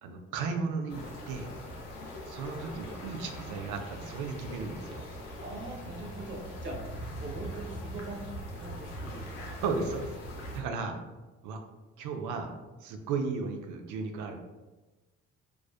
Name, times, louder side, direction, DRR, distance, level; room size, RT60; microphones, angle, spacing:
voice 1, 0.0-1.5 2.3-5.0 9.6-10.1 10.5-11.0 11.4-11.6 12.0-12.5 12.8-14.4, right 4 dB, 70° right, 5 dB, 0.5 m, -35 dB
sound 1, 0.9-10.6, equal, 90° left, 0.6 m, -41 dB
voice 2, 5.4-6.8 7.2-8.2 8.6-9.2, right 2 dB, 35° right, -1 dB, 0.8 m, -41 dB
2.4 x 2.2 x 2.3 m, 1.2 s
hypercardioid pair, 55°, 32 cm